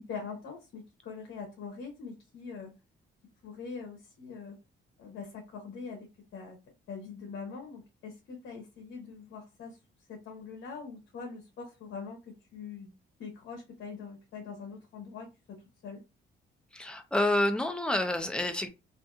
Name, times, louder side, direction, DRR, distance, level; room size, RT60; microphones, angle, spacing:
voice 1, 0.0-2.7 3.4-4.6 5.0-6.6 6.9-9.8 10.1-12.9 13.2-16.0, left 5 dB, 75° left, 0.8 m, -43 dB
voice 2, 16.7-18.7, left 1 dB, 5° left, 0.5 m, -28 dB
2.5 x 2.5 x 2.4 m
cardioid pair, 90°, 20 cm